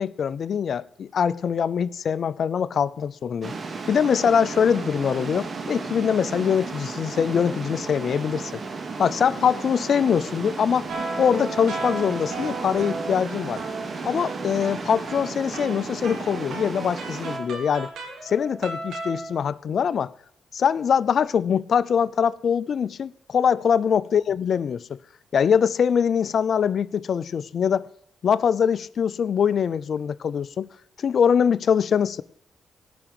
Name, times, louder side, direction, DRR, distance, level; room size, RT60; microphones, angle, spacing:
voice 1, 0.0-3.5 3.9-8.6 9.0-10.9 11.2-13.6 14.0-17.9 18.2-20.1 20.5-25.0 25.3-27.9 28.2-30.7 31.0-32.2, left 7 dB, 65° left, 0.6 m, -23 dB
sound 1, 3.4-17.4, right 4 dB, 45° right, 2.1 m, -34 dB
sound 2, 10.9-19.3, right 3 dB, 80° right, 3.7 m, -35 dB
18.0 x 6.1 x 9.0 m
cardioid pair, 70°, 0 cm